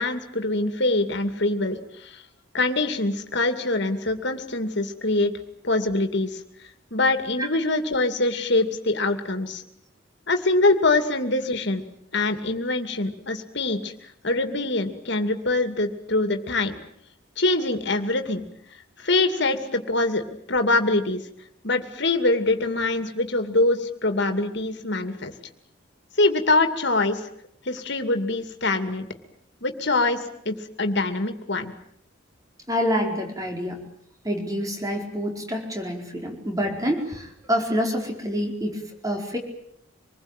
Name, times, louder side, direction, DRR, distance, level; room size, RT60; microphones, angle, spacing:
voice 1, 0.0-2.2 2.5-5.3 5.6-6.4 6.9-9.6 10.3-11.8 12.1-13.9 14.2-16.7 17.4-18.5 19.0-20.2 20.5-21.2 21.6-25.3 26.2-27.2 27.6-29.1 29.6-31.7, left 2 dB, 60° left, 8 dB, 2.6 m, -24 dB
voice 2, 32.7-33.8 34.2-39.4, equal, 15° right, 3 dB, 4.6 m, -27 dB
26.0 x 20.5 x 9.1 m, 0.71 s
head